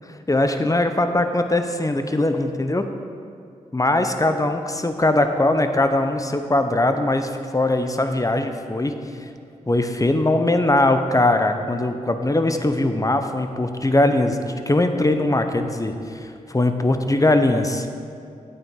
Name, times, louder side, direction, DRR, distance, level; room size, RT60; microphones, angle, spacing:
voice 1, 0.3-2.9 3.7-8.9 9.7-17.9, left 2 dB, 20° left, 7 dB, 0.8 m, -21 dB
8.7 x 8.6 x 3.8 m, 2.5 s
cardioid pair, 40°, 15 cm